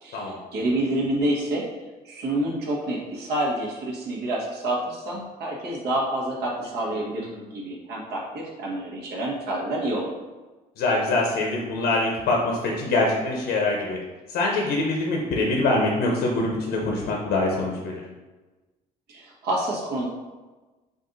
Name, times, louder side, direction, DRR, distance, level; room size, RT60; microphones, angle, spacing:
voice 1, 0.0-1.7 2.0-7.3 7.5-10.1 19.1-20.1, right 1 dB, 75° right, -3 dB, 1.4 m, -28 dB
voice 2, 6.8-7.5 10.8-14.0 14.3-18.0, left 2 dB, 85° left, -1 dB, 0.8 m, -24 dB
5.2 x 2.6 x 3.9 m, 1.2 s
cardioid pair, 110°, 17 cm